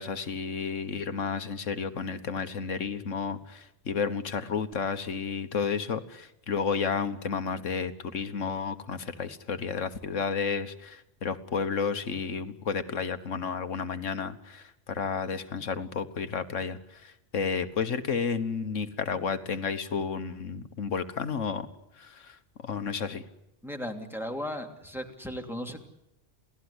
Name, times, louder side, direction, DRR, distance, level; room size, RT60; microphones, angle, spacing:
voice 1, 0.0-21.7 22.0-23.2, left 5 dB, 90° left, 10 dB, 1.7 m, -32 dB
voice 2, 23.6-25.8, equal, ahead, 3 dB, 2.9 m, -36 dB
28.5 x 17.5 x 9.8 m, 0.86 s
omnidirectional pair, 1.2 m